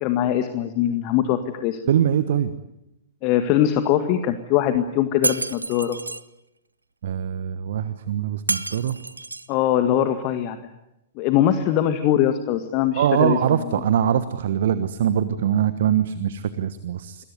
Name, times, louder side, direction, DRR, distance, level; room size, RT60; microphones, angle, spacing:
voice 1, 0.0-1.8 3.2-6.0 9.5-10.6 11.2-13.7, left 11 dB, 40° left, 9 dB, 1.9 m, -22 dB
voice 2, 1.9-2.5 7.0-9.0 13.0-17.2, right 9 dB, 55° right, 13 dB, 1.3 m, -22 dB
Shatter, 5.2-6.2 8.5-9.5, right 2 dB, 80° right, 0.9 m, -28 dB
27.5 x 22.0 x 9.6 m, 0.87 s
figure-of-eight pair, 105°, 0 cm